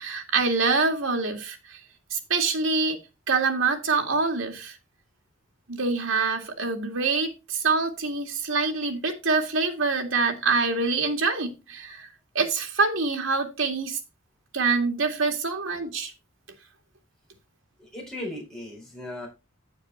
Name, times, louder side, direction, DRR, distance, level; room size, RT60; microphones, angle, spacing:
voice 1, 0.0-1.8 2.1-3.0 3.3-4.8 5.7-12.1 12.3-14.0 14.5-16.1, right 4 dB, 70° right, 4 dB, 2.2 m, -25 dB
voice 2, 17.8-19.3, left 1 dB, 5° left, -4 dB, 4.7 m, -37 dB
9.2 x 7.1 x 4.2 m, 0.26 s
head